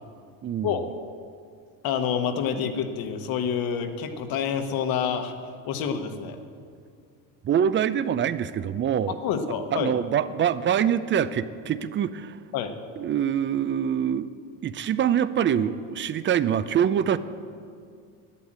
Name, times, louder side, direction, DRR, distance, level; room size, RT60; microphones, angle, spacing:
voice 1, 0.4-0.9 7.4-9.2 9.7-12.4 13.0-14.3 14.6-17.2, right 9 dB, 30° right, 15 dB, 0.5 m, -25 dB
voice 2, 1.8-5.3 5.6-6.4 9.2-9.9 12.5-12.7, left 7 dB, 60° left, 7 dB, 1.4 m, -27 dB
11.5 x 8.5 x 8.7 m, 2.3 s
supercardioid pair, 115°, 40 cm